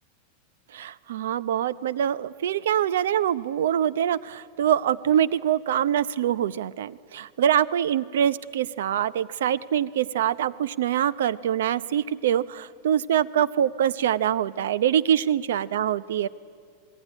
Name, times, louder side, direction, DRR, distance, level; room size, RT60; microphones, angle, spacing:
voice 1, 0.7-16.3, right 10 dB, 85° right, 18 dB, 0.7 m, -24 dB
27.5 x 20.0 x 9.9 m, 2.2 s
supercardioid pair, 165°, 0 cm